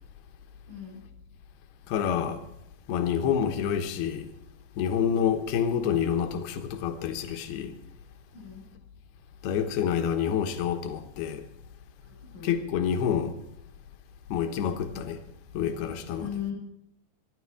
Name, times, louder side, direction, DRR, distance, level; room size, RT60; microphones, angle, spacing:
voice 1, 0.7-1.0 8.3-8.6 12.0-12.5 16.2-16.5, left 9 dB, 65° right, 10.0 m, -37 dB
voice 2, 1.9-2.4 2.9-4.3 4.8-7.7 9.4-11.4 12.4-13.3 14.3-15.2 15.5-16.3, left 8 dB, 75° left, 3.1 m, -28 dB
26.0 x 11.0 x 4.9 m
omnidirectional pair, 5.0 m